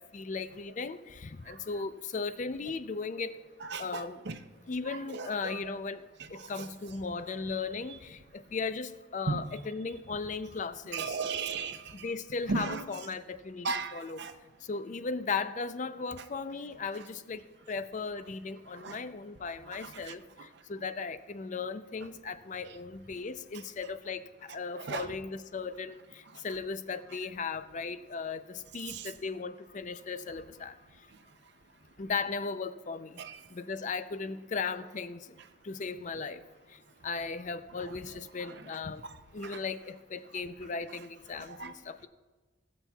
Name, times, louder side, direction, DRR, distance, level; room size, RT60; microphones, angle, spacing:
voice 1, 0.0-3.4 3.8-4.2 4.7-6.0 6.3-11.2 12.0-13.7 13.9-14.2 14.7-17.4 17.7-20.2 20.7-24.2 24.5-26.0 26.4-30.7 32.0-33.2 33.5-35.2 35.6-36.4 37.0-39.0 39.3-42.1, left 4 dB, 35° left, 12 dB, 0.4 m, -37 dB
voice 2, 3.6-4.4 4.9-5.7 6.2-6.7 7.9-8.0 9.3-9.5 10.9-12.1 12.5-13.0 13.6-14.3 16.2-16.3 16.9-17.1 18.7-19.0 19.7-20.5 22.7-22.8 23.5-23.6 24.7-25.1 26.3-26.4 27.1-27.2 28.9-29.1 33.2-33.5 37.7-38.8 39.4-39.6 41.0-41.1 41.3-41.7, right 4 dB, 55° right, 10 dB, 0.6 m, -38 dB
20.5 x 7.3 x 2.3 m, 1.3 s
head